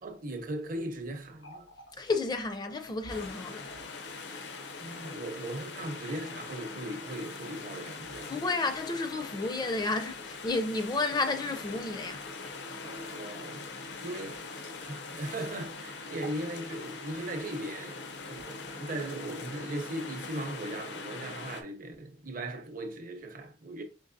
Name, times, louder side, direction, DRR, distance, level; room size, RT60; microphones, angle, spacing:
voice 1, 0.0-1.7 4.8-8.4 12.8-13.6 14.0-23.8, right 1 dB, 50° right, 0.6 m, -38 dB
Water tap faucet, 1.2-15.2 15.5-15.7 16.1-16.5 16.8-17.5 18.1-18.9, equal, 90° left, 1.6 m, -56 dB
voice 2, 2.0-3.8 8.3-12.2, left 3 dB, 25° left, 0.4 m, -31 dB
sound 1, 3.1-21.6, left 4 dB, 70° left, 0.6 m, -42 dB
5.2 x 3.0 x 2.6 m
head